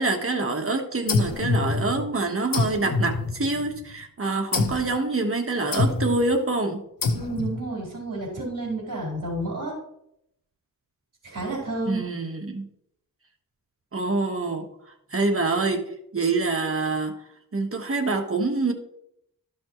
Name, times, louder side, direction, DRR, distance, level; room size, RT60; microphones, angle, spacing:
voice 1, 0.0-6.8 11.9-12.7 13.9-14.7 15.1-17.2 17.5-18.7, right 3 dB, 40° right, 3 dB, 1.3 m, -26 dB
sound 1, 1.1-2.1 2.5-3.8 4.5-5.0 5.7-6.3 7.0-7.6, left 3 dB, 70° left, 1.1 m, -26 dB
voice 2, 7.1-9.7 11.2-12.0, right 2 dB, 60° right, -5 dB, 4.1 m, -30 dB
13.0 x 6.2 x 3.1 m, 0.75 s
wide cardioid pair, 110°, 35 cm